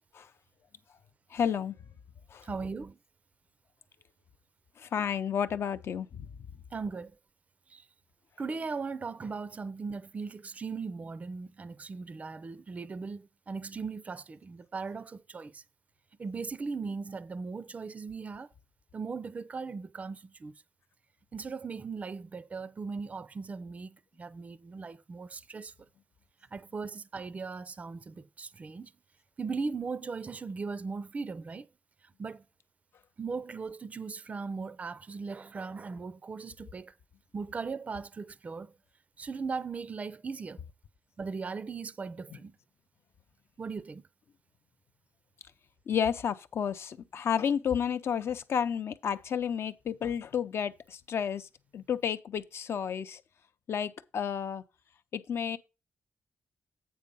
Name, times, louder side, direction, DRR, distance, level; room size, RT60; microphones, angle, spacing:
voice 1, 1.3-1.7 2.3-2.5 4.8-6.3 42.3-42.4 45.9-51.5 51.7-53.2 53.7-54.6 55.1-55.6, left 8 dB, 65° left, 0.6 m, -31 dB
voice 2, 2.4-3.0 6.7-7.1 7.7-7.8 8.4-15.6 16.2-18.5 18.9-20.5 21.3-25.7 26.5-28.9 29.4-31.7 32.2-32.4 33.2-36.9 37.3-38.7 39.2-40.6 41.2-42.5 43.6-44.0, right 4 dB, 30° right, 0.4 m, -38 dB
8.6 x 4.5 x 5.3 m
wide cardioid pair, 120°, 5 cm